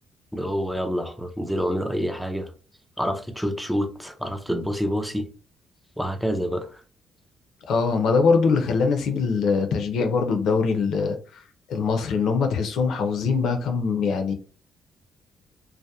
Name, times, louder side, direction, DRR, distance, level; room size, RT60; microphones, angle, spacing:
voice 1, 0.3-2.5 3.0-5.3 6.0-6.8, equal, ahead, 0.4 m, -27 dB
voice 2, 7.7-11.2 11.7-14.3, left 5 dB, 75° left, 0.5 m, -22 dB
2.7 x 2.1 x 2.3 m
cardioid pair, 90°, 0 cm